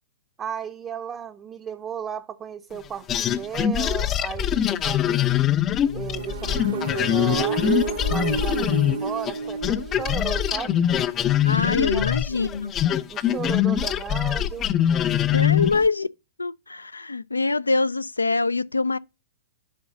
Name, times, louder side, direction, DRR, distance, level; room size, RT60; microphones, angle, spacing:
voice 1, 0.4-5.3 5.9-7.6 8.1-10.8 11.9-12.7 13.1-14.7 15.3-15.9, right 8 dB, 25° right, 0.6 m, -35 dB
sound 1, 3.1-9.4 9.6-15.9, left 10 dB, 25° left, 0.5 m, -23 dB
sound 2, 5.8-11.6, right 4 dB, 75° right, 1.2 m, -30 dB
voice 2, 11.4-12.7 15.3-16.1 16.4-19.0, left 3 dB, 85° left, 0.3 m, -24 dB
10.0 x 3.8 x 3.8 m
figure-of-eight pair, 110°, 0 cm